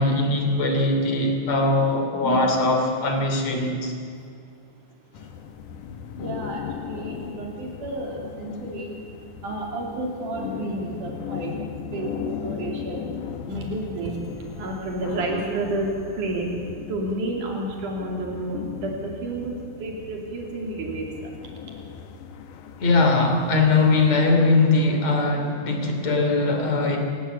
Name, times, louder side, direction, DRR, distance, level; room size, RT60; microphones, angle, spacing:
voice 1, 0.0-3.9 22.8-27.0, left 3 dB, 60° left, 3 dB, 4.3 m, -21 dB
sound 1, 5.1-24.1, left 8 dB, 90° left, 2.7 m, -37 dB
voice 2, 6.2-9.0 9.4-13.1 13.5-16.6 16.9-21.3 21.6-21.9, right 2 dB, 90° right, 0 dB, 4.4 m, -31 dB
29.0 x 16.0 x 8.4 m, 2.4 s
omnidirectional pair, 3.5 m